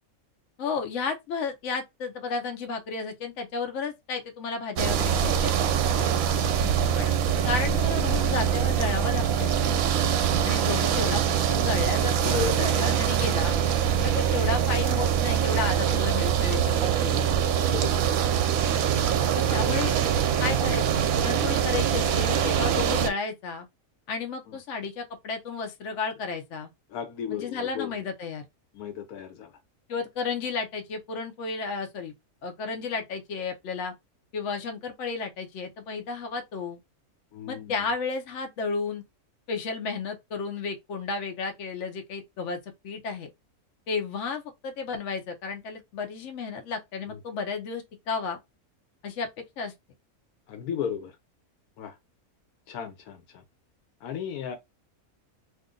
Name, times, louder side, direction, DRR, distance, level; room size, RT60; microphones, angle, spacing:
voice 1, 0.6-5.5 6.9-7.1 7.4-9.8 10.4-11.2 11.5-13.6 14.0-17.4 19.4-19.9 20.4-23.7 24.1-26.7 27.3-28.4 29.9-32.1 32.4-33.9 34.3-36.8 37.5-39.0 39.5-42.6 42.8-43.3 43.9-48.4 49.0-49.3 49.6-49.7, left 4 dB, 60° left, 1.0 m, -32 dB
sound 1, 4.8-23.1, right 8 dB, 70° right, 0.9 m, -24 dB
voice 2, 5.9-6.3 12.2-13.1 14.2-14.3 15.8-16.0 17.6-18.1 24.5-24.6 26.9-28.0 28.7-29.5 37.3-37.7 47.1-47.2 50.5-51.1 51.8-52.0 52.7-53.4 54.0-54.6, left 7 dB, 80° left, 1.2 m, -35 dB
2.8 x 2.5 x 3.6 m
omnidirectional pair, 1.6 m